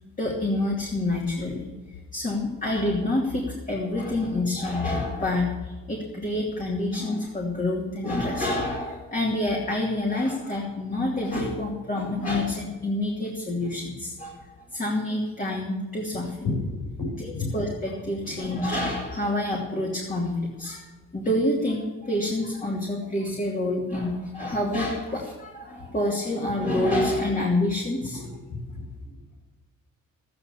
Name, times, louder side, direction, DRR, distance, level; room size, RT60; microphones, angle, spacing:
voice 1, 0.2-1.7 2.1-14.4 14.7-16.5 17.2-20.9 21.1-28.2, left 1 dB, 25° left, -2 dB, 2.8 m, -27 dB
voice 2, 17.0-17.5 18.2-18.4 28.0-28.8 29.1-29.5, left 3 dB, 90° left, 0 dB, 5.8 m, -32 dB
13.0 x 9.7 x 7.1 m, 1.3 s
cardioid pair, 90°, 30 cm